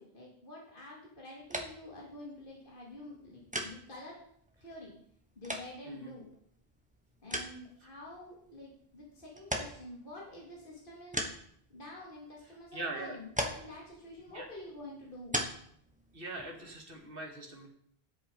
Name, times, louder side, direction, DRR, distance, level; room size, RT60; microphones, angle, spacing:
voice 1, 0.0-4.2 4.6-4.9 5.4-6.2 7.2-11.3 11.7-15.4, left 1 dB, 55° left, -3 dB, 2.7 m, -48 dB
sound 1, 1.4-17.1, equal, 5° right, 1.3 m, -42 dB
voice 2, 12.7-13.2 14.3-14.5 16.1-17.7, right 2 dB, 60° right, 1 dB, 2.4 m, -41 dB
10.5 x 8.1 x 5.2 m, 0.66 s
omnidirectional pair, 1.1 m